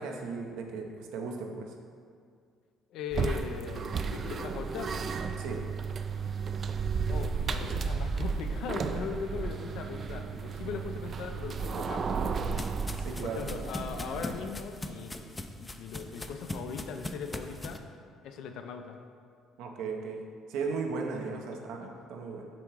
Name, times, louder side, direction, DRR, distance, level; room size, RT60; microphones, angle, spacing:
voice 1, 0.0-1.7 5.4-5.6 13.0-13.5 19.6-20.2 20.5-22.5, right 4 dB, 80° right, 2 dB, 0.7 m, -36 dB
voice 2, 2.9-4.9 7.1-12.5 13.2-17.8 18.2-19.0 21.5-21.9, left 6 dB, 70° left, 6 dB, 0.5 m, -39 dB
sound 1, 3.1-14.5, right 5 dB, 45° right, 0.3 m, -33 dB
sound 2, 11.7-17.8, left 1 dB, 15° left, 0.4 m, -41 dB
6.0 x 3.6 x 4.7 m, 2.2 s
supercardioid pair, 75°, 0 cm